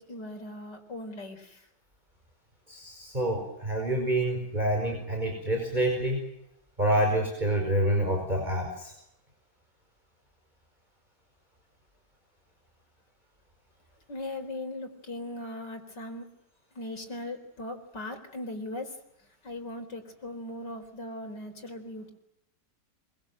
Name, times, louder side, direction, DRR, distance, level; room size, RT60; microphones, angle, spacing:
voice 1, 0.0-1.7 14.1-16.3 16.7-19.0 19.4-22.1, left 1 dB, 75° left, 5 dB, 5.0 m, -39 dB
voice 2, 2.7-6.3 6.8-8.9, right 1 dB, 25° right, 1 dB, 5.4 m, -27 dB
25.5 x 24.0 x 7.9 m, 0.81 s
omnidirectional pair, 1.9 m